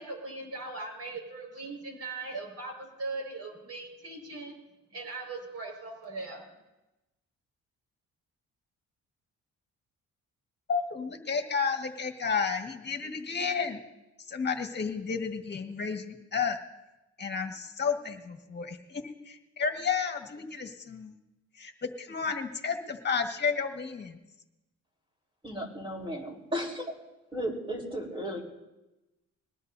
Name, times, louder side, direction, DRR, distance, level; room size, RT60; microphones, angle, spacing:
voice 1, 0.0-4.6 4.9-6.4, right 3 dB, 55° right, 2 dB, 5.3 m, -39 dB
voice 2, 10.7-13.8 14.2-16.6 17.2-21.2 21.6-24.2, left 5 dB, 35° left, 4 dB, 1.7 m, -32 dB
voice 3, 25.4-26.9 27.3-28.4, equal, 15° right, 0 dB, 4.1 m, -34 dB
21.5 x 18.5 x 2.7 m, 1.0 s
cardioid pair, 90°, 30 cm